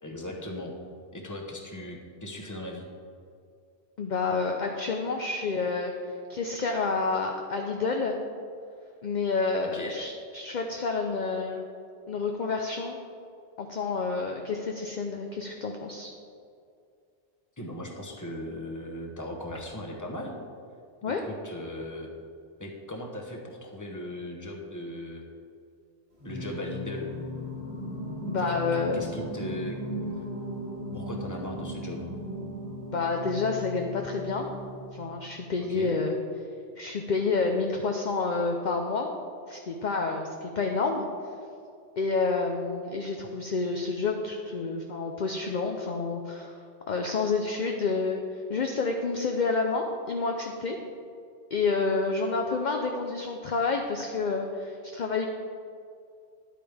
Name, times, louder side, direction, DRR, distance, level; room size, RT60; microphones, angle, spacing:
voice 1, 0.0-0.7 1.1-2.9 9.7-10.0 17.6-20.4 21.3-22.1 22.6-25.2 26.2-27.1 28.4-29.8 30.9-32.0 35.6-35.9, left 1 dB, 15° left, 1 dB, 1.0 m, -38 dB
voice 2, 4.0-5.9 6.3-8.2 9.0-11.6 12.1-13.0 13.6-16.1 21.0-21.2 28.3-29.0 32.9-34.5 34.9-36.2 36.8-39.1 39.5-41.1 42.0-46.6 46.9-50.8 51.5-55.3, left 4 dB, 50° left, 2 dB, 0.7 m, -29 dB
Singing, 26.2-35.1, equal, 25° right, 2.0 m, -37 dB
10.5 x 8.6 x 3.5 m, 2.4 s
omnidirectional pair, 1.2 m